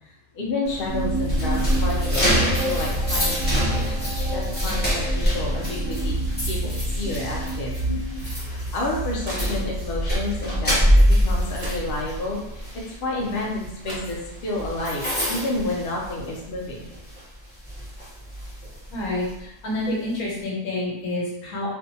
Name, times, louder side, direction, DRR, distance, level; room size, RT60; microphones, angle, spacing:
voice 1, 0.3-3.9 4.3-6.2 6.5-6.6 6.9-7.7 8.5-16.9, left 2 dB, 55° left, -2 dB, 0.7 m, -30 dB
sound 1, 0.6-16.6 16.9-17.2 17.7-19.3, equal, 10° left, 0.6 m, -25 dB
sound 2, 0.9-12.4, right 1 dB, 35° left, 1.1 m, -29 dB
sound 3, 8.7-10.0 11.2-11.3 11.6-12.4 13.5-13.6 13.8-14.7, right 1 dB, 50° right, 0.4 m, -41 dB
voice 2, 18.9-21.7, left 1 dB, 85° left, -4 dB, 1.3 m, -28 dB
2.6 x 2.2 x 2.6 m, 0.84 s
omnidirectional pair, 1.5 m